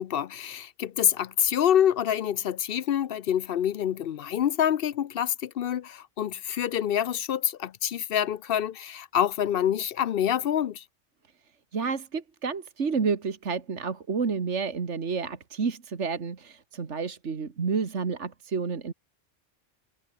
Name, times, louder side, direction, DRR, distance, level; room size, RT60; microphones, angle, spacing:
voice 1, 0.0-10.8, left 10 dB, 60° left, 0.7 m, -26 dB
voice 2, 11.7-18.9, right 5 dB, 70° right, 2.1 m, -30 dB
omnidirectional pair, 1.3 m